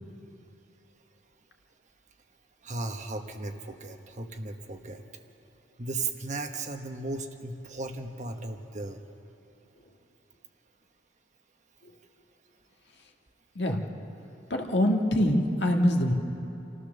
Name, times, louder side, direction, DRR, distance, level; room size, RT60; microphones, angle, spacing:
voice 1, 2.6-5.0 5.8-9.0, right 3 dB, 40° right, 5 dB, 1.3 m, -36 dB
voice 2, 14.5-16.1, left 1 dB, 70° left, 1 dB, 1.7 m, -24 dB
28.0 x 14.0 x 6.7 m, 2.9 s
head